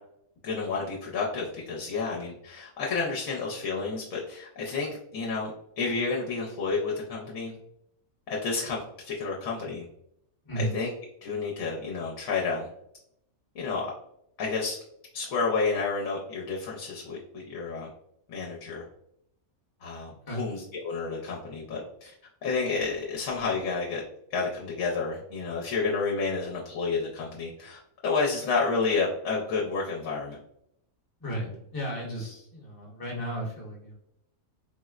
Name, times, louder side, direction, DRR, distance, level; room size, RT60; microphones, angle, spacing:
voice 1, 0.4-7.6 8.3-9.9 10.6-10.9 11.2-12.7 13.5-13.9 14.4-14.8 15.1-17.9 18.3-18.8 19.8-22.1 22.4-24.0 24.3-30.4, left 4 dB, 75° left, -3 dB, 1.0 m, -30 dB
voice 2, 10.4-10.8 20.1-20.4 31.2-33.9, right 1 dB, 20° left, -4 dB, 0.7 m, -34 dB
4.1 x 2.0 x 2.3 m, 0.75 s
omnidirectional pair, 1.5 m